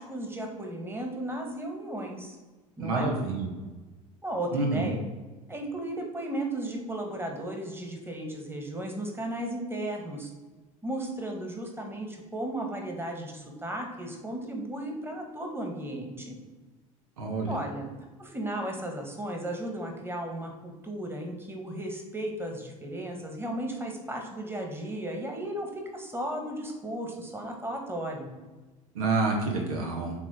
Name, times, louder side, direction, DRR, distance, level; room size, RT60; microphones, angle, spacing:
voice 1, 0.0-2.4 2.8-3.1 4.2-5.0 5.5-10.3 10.8-16.4 17.5-17.9 18.2-28.3, right 1 dB, 15° right, 2 dB, 1.5 m, -35 dB
voice 2, 2.8-3.5 4.5-4.9 17.2-17.5 28.9-30.1, right 3 dB, 85° right, 1 dB, 1.2 m, -28 dB
7.5 x 3.0 x 4.3 m, 1.2 s
hypercardioid pair, 75°, 18 cm